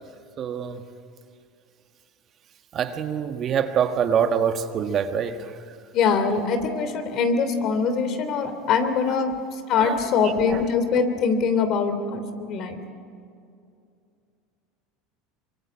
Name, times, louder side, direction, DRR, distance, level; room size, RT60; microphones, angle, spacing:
voice 1, 0.4-0.8 2.7-5.3 9.8-10.0, right 7 dB, 40° right, 1.6 m, -24 dB
voice 2, 5.9-9.3 9.7-12.8, left 5 dB, 50° left, 3.0 m, -23 dB
24.5 x 23.5 x 8.6 m
supercardioid pair, 115°, 0 cm